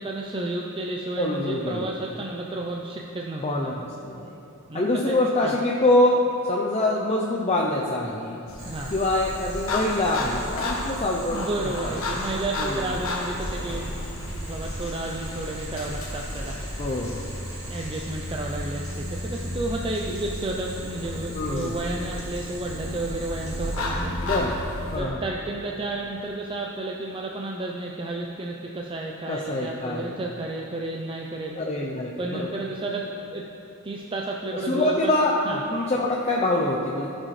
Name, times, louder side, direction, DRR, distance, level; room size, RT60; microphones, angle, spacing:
voice 1, 0.0-3.7 4.7-5.5 8.6-8.9 11.3-13.9 14.3-16.6 17.7-24.2 24.9-31.6 32.2-33.5 33.8-35.1 35.4-35.6, right 2 dB, 25° right, 0 dB, 0.4 m, -32 dB
voice 2, 1.2-1.9 3.4-4.4 4.7-8.4 8.9-11.5 11.8-11.9 12.6-12.9 16.8-17.3 21.3-21.7 24.2-24.6 24.9-25.2 29.3-30.1 31.6-32.5 34.5-37.1, left 2 dB, 30° left, -2 dB, 0.5 m, -25 dB
sound 1, 8.5-25.0, left 1 dB, 65° left, 1.1 m, -33 dB
Boiling, 8.6-23.7, right 2 dB, 65° right, 1.8 m, -43 dB
14.5 x 6.3 x 3.2 m, 2.9 s
head